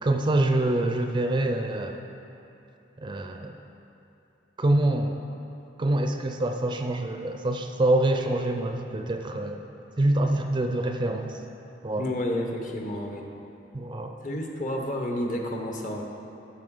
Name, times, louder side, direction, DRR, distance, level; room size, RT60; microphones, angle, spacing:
voice 1, 0.0-2.0 3.0-3.5 4.6-5.2 5.8-9.6 10.0-11.4 11.8-12.1 13.7-14.1, right 1 dB, 25° right, 5 dB, 0.4 m, -25 dB
voice 2, 12.0-13.3 14.2-16.0, left 1 dB, 45° left, 1 dB, 1.0 m, -30 dB
12.5 x 6.1 x 3.8 m, 2.9 s
head